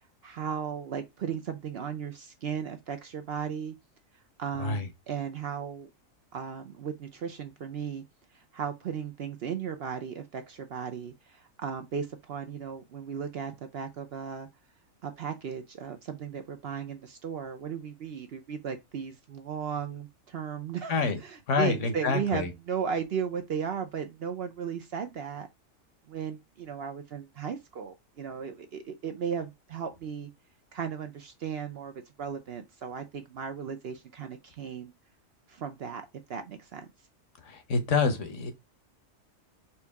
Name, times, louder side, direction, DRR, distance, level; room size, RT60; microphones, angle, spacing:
voice 1, 0.0-3.7 4.4-5.9 6.3-8.0 8.3-14.5 15.0-25.5 26.1-30.3 30.7-34.9 35.5-36.0 36.3-36.9, right 7 dB, 60° right, 0.7 m, -36 dB
voice 2, 21.5-22.5 37.4-38.5, left 4 dB, 65° left, 1.2 m, -27 dB
4.4 x 2.7 x 3.4 m
omnidirectional pair, 1.4 m